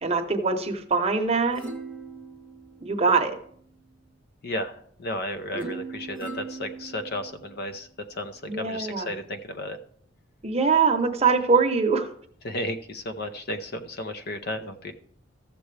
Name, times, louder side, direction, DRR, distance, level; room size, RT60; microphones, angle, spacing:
voice 1, 0.0-1.6 2.8-3.4 5.5-5.7 8.5-9.1 10.4-12.1, right 4 dB, 30° right, 5 dB, 0.8 m, -23 dB
sound 1, 1.3-3.6 5.6-7.6 8.2-8.3, right 3 dB, 5° left, 1.1 m, -40 dB
voice 2, 4.4-9.8 12.4-14.9, left 1 dB, 55° left, 9 dB, 0.6 m, -33 dB
14.5 x 6.8 x 3.3 m, 0.63 s
head